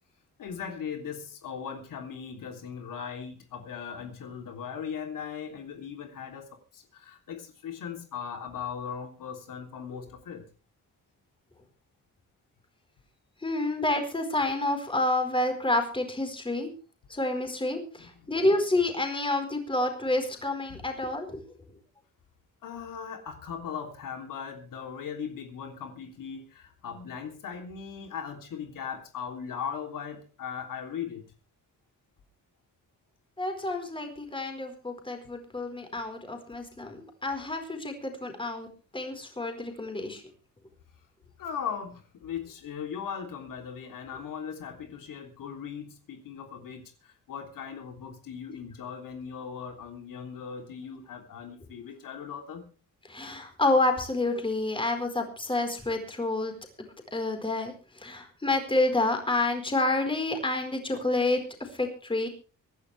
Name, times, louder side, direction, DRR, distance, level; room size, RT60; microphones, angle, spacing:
voice 1, 0.4-10.5 18.0-18.3 20.7-20.8 22.6-31.2 41.4-52.7, left 7 dB, 80° left, 4 dB, 3.3 m, -39 dB
voice 2, 13.4-16.7 17.1-21.4 33.4-38.7 38.9-40.2 53.1-56.5 57.1-62.3, left 2 dB, 15° left, 5 dB, 4.6 m, -29 dB
24.5 x 11.5 x 3.4 m, 0.35 s
cardioid pair, 125°, 32 cm